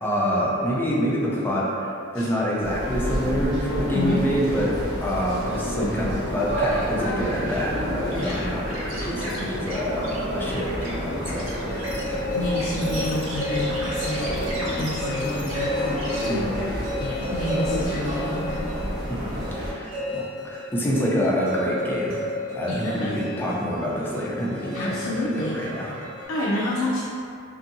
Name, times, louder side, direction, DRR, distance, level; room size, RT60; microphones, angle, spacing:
voice 1, 0.0-11.9 16.2-16.6 19.1-26.3, equal, 10° left, -5 dB, 0.4 m, -27 dB
sound 1, 2.6-19.7, equal, 45° right, 1.5 m, -29 dB
voice 2, 3.9-4.3 8.1-8.4 12.3-16.0 17.0-18.6 22.7-23.1 24.7-25.6 26.3-27.0, left 1 dB, 85° left, -5 dB, 0.4 m, -29 dB
sound 2, 8.1-16.3, right 1 dB, 80° right, 0.6 m, -37 dB
sound 3, 11.7-26.2, left 2 dB, 10° right, 0.8 m, -33 dB
2.7 x 2.6 x 2.6 m, 2.5 s
head